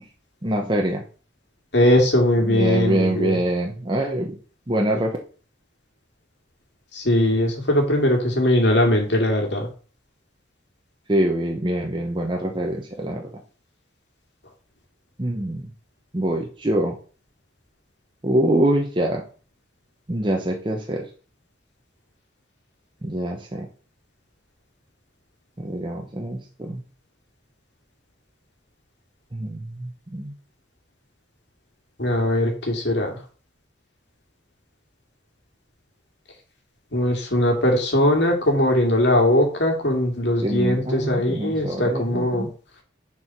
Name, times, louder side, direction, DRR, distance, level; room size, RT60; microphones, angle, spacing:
voice 1, 0.4-1.0 2.4-4.3 4.7-5.2 11.1-13.2 15.2-15.7 16.1-16.9 18.2-19.2 20.1-21.0 23.0-23.7 25.6-26.8 29.3-30.3 40.4-42.5, right 1 dB, 25° right, 1 dB, 0.9 m, -24 dB
voice 2, 1.7-3.4 6.9-9.7 32.0-33.1 36.9-42.5, left 1 dB, 65° left, 1 dB, 2.4 m, -20 dB
7.2 x 4.7 x 5.9 m, 0.39 s
head